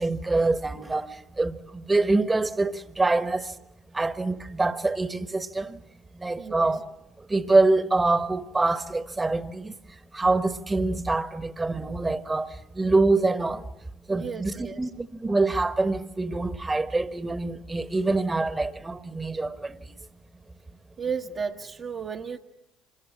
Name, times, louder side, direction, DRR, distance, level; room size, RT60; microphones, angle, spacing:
voice 1, 0.0-3.5 3.9-5.8 6.2-6.8 7.3-9.7 10.1-13.6 14.1-19.8, right 3 dB, 20° right, 1.3 m, -25 dB
voice 2, 6.4-6.7 14.1-14.9 21.0-22.4, right 6 dB, 40° right, 1.1 m, -33 dB
26.5 x 21.0 x 7.4 m
hypercardioid pair, 55°, 0 cm